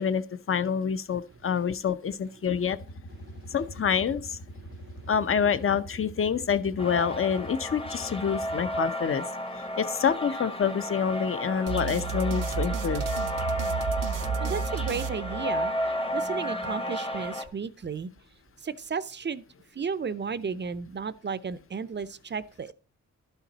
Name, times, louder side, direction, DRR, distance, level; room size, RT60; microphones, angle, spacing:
voice 1, 0.0-2.8 3.5-4.4 5.1-9.2 9.8-13.0, left 7 dB, 40° left, 0.7 m, -27 dB
sound 1, 2.7-8.8, equal, 65° left, 1.3 m, -44 dB
voice 2, 3.2-3.5 4.6-5.1 14.4-15.7 16.1-18.1 18.6-19.4 19.7-22.7, right 5 dB, 35° right, 0.5 m, -34 dB
sound 2, 6.8-17.4, equal, 15° left, 0.9 m, -33 dB
sound 3, 11.7-15.9, right 6 dB, 70° right, 0.6 m, -32 dB
12.0 x 5.8 x 4.0 m
wide cardioid pair, 110°, 33 cm